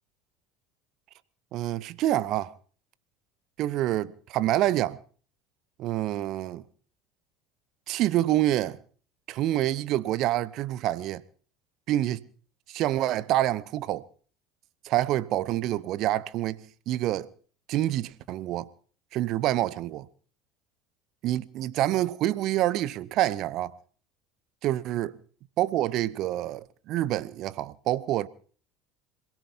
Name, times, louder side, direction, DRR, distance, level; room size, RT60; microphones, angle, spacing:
voice 1, 1.5-2.5 3.6-5.0 5.8-6.6 7.9-8.8 9.3-11.2 11.9-12.2 12.7-14.0 14.8-17.3 17.7-18.7 19.1-20.1 21.2-23.7 24.6-25.1 25.6-28.3, right 14 dB, 50° right, 0.7 m, -27 dB
27.0 x 17.5 x 2.9 m
figure-of-eight pair, 65°, 0 cm